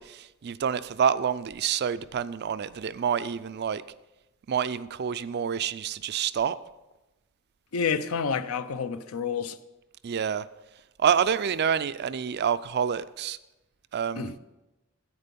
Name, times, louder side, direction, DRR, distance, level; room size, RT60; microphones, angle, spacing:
voice 1, 0.0-3.8 4.5-6.6 10.0-10.4 11.0-13.4 13.9-14.3, right 7 dB, 50° right, 0.4 m, -27 dB
voice 2, 7.7-9.6 14.2-14.4, left 6 dB, 75° left, 0.6 m, -29 dB
9.7 x 8.3 x 5.3 m
head